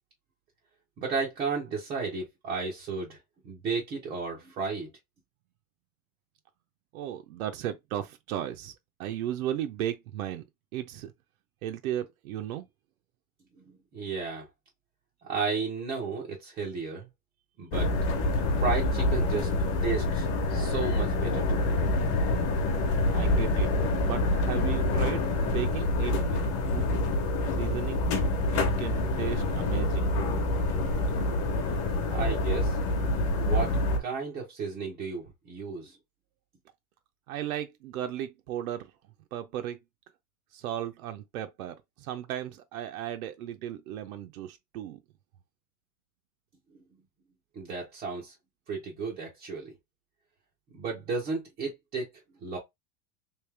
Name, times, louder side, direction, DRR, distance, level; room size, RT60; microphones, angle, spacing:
voice 1, 1.0-3.2 3.4-4.9 13.7-14.5 15.2-17.1 17.6-17.9 18.5-19.5 19.8-21.7 32.1-32.8 33.3-36.0 47.6-48.3 48.7-49.7 50.7-52.1 52.4-52.6, right 4 dB, 15° right, 0.4 m, -33 dB
voice 2, 6.9-8.7 9.0-10.4 10.7-11.1 11.6-12.6 23.1-23.7 24.0-26.4 26.7-26.9 27.6-28.0 28.5-30.3 37.3-38.9 39.3-39.8 40.5-41.7 42.0-45.0, right 11 dB, 70° right, 0.7 m, -35 dB
sound 1, 17.7-34.0, left 2 dB, 30° left, 0.9 m, -26 dB
3.3 x 2.7 x 3.2 m
supercardioid pair, 165°, 44 cm